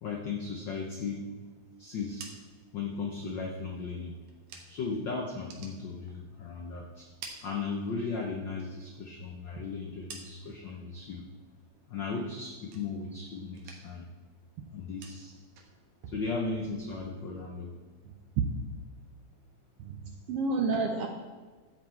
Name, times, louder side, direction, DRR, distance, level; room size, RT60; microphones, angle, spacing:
voice 1, 0.0-1.3 1.8-2.3 2.7-4.2 4.7-7.1 7.4-11.3 11.9-14.1 14.7-15.3 16.1-17.8, left 4 dB, 85° left, 0 dB, 1.0 m, -36 dB
sound 1, 1.9-5.0 5.3-6.6 6.9-8.2 8.6-10.7 11.1-11.6 11.9-13.2 13.5-14.1 14.4-17.2, right 5 dB, 90° right, 2.6 m, -51 dB
voice 2, 19.8-21.1, right 3 dB, 70° right, 3 dB, 1.4 m, -30 dB
11.5 x 7.7 x 4.5 m, 1.4 s
omnidirectional pair, 3.4 m